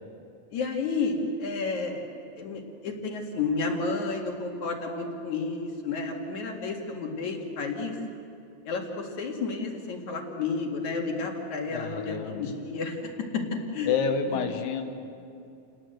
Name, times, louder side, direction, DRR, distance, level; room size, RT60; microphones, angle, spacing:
voice 1, 0.5-2.0 2.4-7.9 8.7-13.4 13.7-13.9 14.3-14.4, left 4 dB, 50° left, 1 dB, 2.7 m, -31 dB
voice 2, 11.7-12.5 13.9-14.8, left 6 dB, 70° left, 6 dB, 3.0 m, -29 dB
30.0 x 19.5 x 7.9 m, 2.7 s
omnidirectional pair, 5.7 m